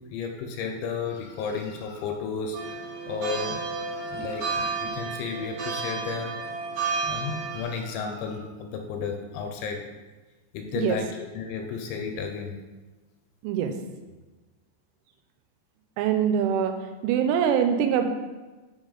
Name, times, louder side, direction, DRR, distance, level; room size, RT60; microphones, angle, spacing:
voice 1, 0.1-2.8 3.1-6.3 7.0-9.8 10.5-11.1 11.4-12.5, left 5 dB, 85° left, 4 dB, 2.8 m, -33 dB
sound 1, 2.5-7.6, right 4 dB, 60° right, 2.1 m, -32 dB
voice 2, 13.4-13.7 16.0-16.8 17.0-18.0, right 8 dB, 85° right, 7 dB, 3.1 m, -24 dB
6.7 x 5.4 x 3.8 m, 1.2 s
omnidirectional pair, 5.5 m